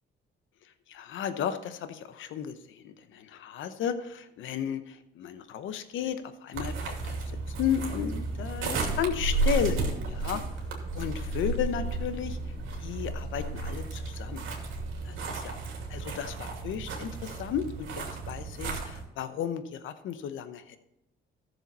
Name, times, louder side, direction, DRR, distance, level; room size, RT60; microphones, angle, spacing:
voice 1, 0.9-7.2 7.5-9.8 10.1-10.4 10.9-12.4 12.8-14.4 15.0-15.6 15.9-20.8, left 9 dB, 80° left, 11 dB, 0.9 m, -34 dB
sound 1, 6.5-19.0, right 3 dB, 80° right, 2.6 m, -33 dB
14.0 x 7.1 x 4.1 m, 0.87 s
cardioid pair, 90°, 20 cm